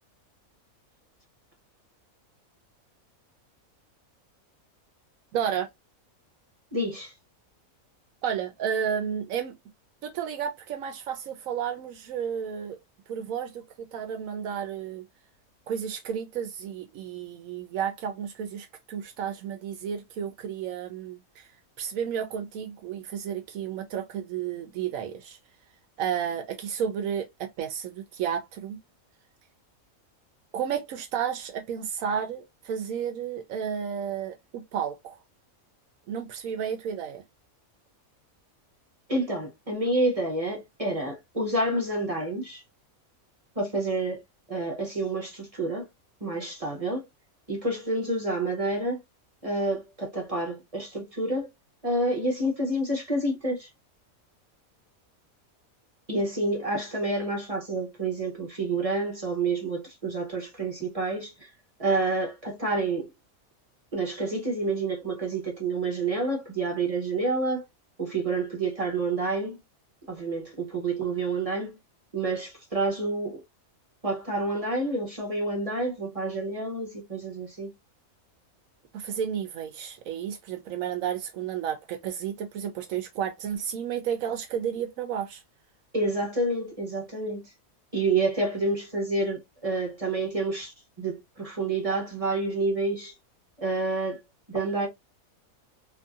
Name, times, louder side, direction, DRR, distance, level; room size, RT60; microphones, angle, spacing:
voice 1, 5.3-5.7 8.2-9.5 10.0-12.8 13.1-15.0 15.7-21.5 21.8-25.4 26.0-28.8 30.5-35.2 36.1-37.2 78.9-85.4, right 8 dB, 75° right, 1.0 m, -32 dB
voice 2, 6.7-7.1 39.1-42.6 43.6-44.2 44.5-45.9 46.2-47.0 47.5-49.0 49.4-51.5 51.8-53.7 56.1-61.5 61.8-63.1 63.9-67.6 68.0-69.6 70.1-71.8 72.1-73.4 74.0-77.7 85.9-87.4 87.9-93.1 93.6-94.2 94.5-94.9, right 2 dB, 30° right, 0.9 m, -28 dB
2.9 x 2.6 x 2.3 m
omnidirectional pair, 1.5 m